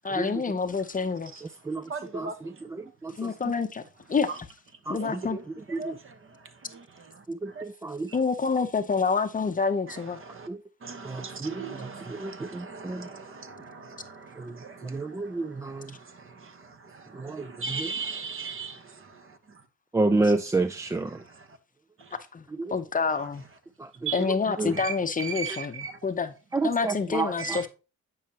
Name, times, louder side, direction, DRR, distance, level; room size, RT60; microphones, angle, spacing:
voice 1, 0.0-1.3 3.2-3.8 4.1-4.5 4.9-5.4 8.1-10.2 20.2-20.3 22.3-22.5 22.7-23.4 24.1-26.3 26.6-27.7, left 5 dB, 25° left, 0.7 m, -27 dB
voice 2, 1.9-2.3 5.0-5.4 5.8-6.1 6.7-6.8 7.5-7.6 9.9-10.0 10.3-10.5 10.8-19.1 24.1-24.2 24.8-24.9 25.2-25.9 27.4-27.6, right 5 dB, 45° right, 1.2 m, -38 dB
voice 3, 7.4-8.1 10.5-10.6 11.0-11.5 12.1-13.0 14.8-15.9 17.2-17.9 19.9-21.1 24.6-24.7 26.5-27.3, right 3 dB, 10° right, 0.3 m, -28 dB
9.1 x 5.5 x 2.9 m
cardioid pair, 90°, 30 cm